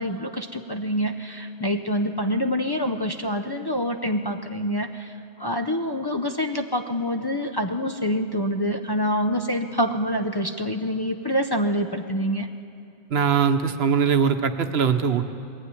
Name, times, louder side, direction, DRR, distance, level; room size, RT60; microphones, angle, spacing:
voice 1, 0.0-12.5, equal, 25° left, 3 dB, 0.6 m, -26 dB
voice 2, 13.1-15.2, right 6 dB, 70° right, 8 dB, 1.1 m, -21 dB
20.5 x 14.5 x 9.8 m, 2.6 s
omnidirectional pair, 1.1 m